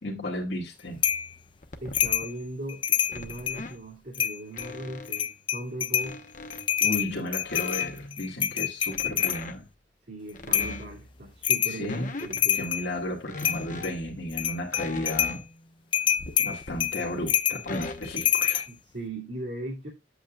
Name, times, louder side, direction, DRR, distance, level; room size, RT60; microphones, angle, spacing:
voice 1, 0.0-1.0 6.8-9.7 11.7-12.1 12.5-15.4 16.4-18.6, left 1 dB, 70° left, 1.8 m, -33 dB
sound 1, 1.0-2.3 3.1-3.8 4.5-5.4 6.0-7.0 7.4-9.7 10.3-11.3 11.8-12.6 13.3-14.1 14.7-15.7 16.2-16.9 17.6-18.6, left 3 dB, 45° left, 0.9 m, -41 dB
sound 2, 1.0-1.3 1.9-2.3 2.7-3.6 4.1-4.7 5.1-6.1 6.5-9.4 10.5-10.8 11.4-11.8 12.2-12.9 13.4-13.9 14.3-15.4 15.9-18.7, left 9 dB, 30° left, 0.3 m, -26 dB
voice 2, 1.8-6.2 10.1-12.6 18.7-19.9, right 1 dB, 65° right, 2.4 m, -38 dB
8.3 x 8.0 x 2.4 m
head